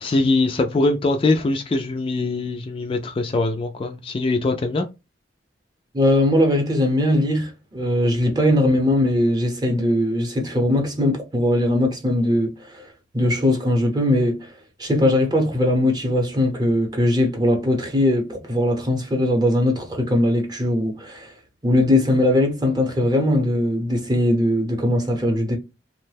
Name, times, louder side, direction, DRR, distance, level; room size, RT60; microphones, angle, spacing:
voice 1, 0.0-4.9, left 2 dB, 30° left, 0.3 m, -22 dB
voice 2, 5.9-12.8 13.1-14.4 14.8-21.3 21.6-25.6, left 1 dB, 25° right, 0.8 m, -20 dB
2.9 x 2.1 x 3.2 m
head